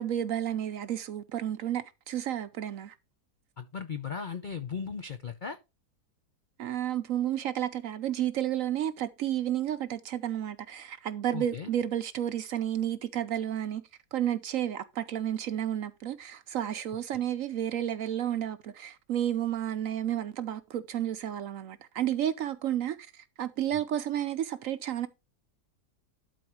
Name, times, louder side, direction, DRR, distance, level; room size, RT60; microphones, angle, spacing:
voice 1, 0.0-2.9 6.6-13.8 14.1-25.1, right 11 dB, 65° right, 0.8 m, -31 dB
voice 2, 3.6-5.6 11.3-11.7 23.7-23.8, left 6 dB, 80° left, 0.4 m, -37 dB
12.0 x 4.2 x 4.6 m
omnidirectional pair, 1.8 m